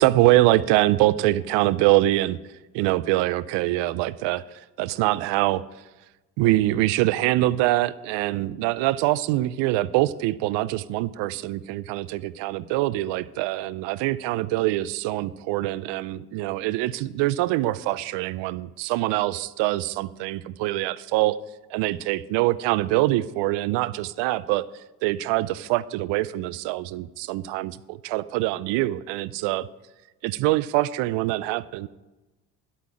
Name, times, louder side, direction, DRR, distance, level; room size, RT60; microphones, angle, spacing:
voice 1, 0.0-2.4 2.7-4.4 4.8-5.6 6.4-21.4 21.7-24.7 25.0-29.7 30.2-31.9, right 17 dB, 75° right, 19 dB, 0.6 m, -24 dB
11.5 x 8.5 x 4.9 m, 1.1 s
supercardioid pair, 65°, 43 cm